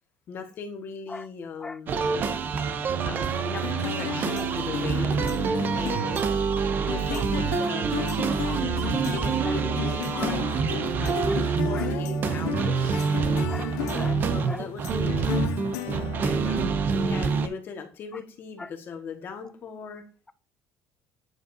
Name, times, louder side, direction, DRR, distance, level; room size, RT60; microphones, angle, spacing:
voice 1, 0.3-2.0 3.0-5.2 5.7-6.1 6.9-7.9 9.1-10.5 11.0-11.2 11.6-13.0 14.3-15.6 16.2-20.0, left 5 dB, 40° left, 5 dB, 1.5 m, -38 dB
sound 1, 1.9-17.5, right 5 dB, 40° right, 0.5 m, -26 dB
sound 2, 3.6-16.8, left 11 dB, 90° left, 0.8 m, -35 dB
voice 2, 13.5-14.6 18.1-18.2 18.6-18.7, left 3 dB, 10° left, 13 dB, 0.4 m, -40 dB
8.9 x 5.0 x 2.7 m, 0.37 s
cardioid pair, 145°, 5 cm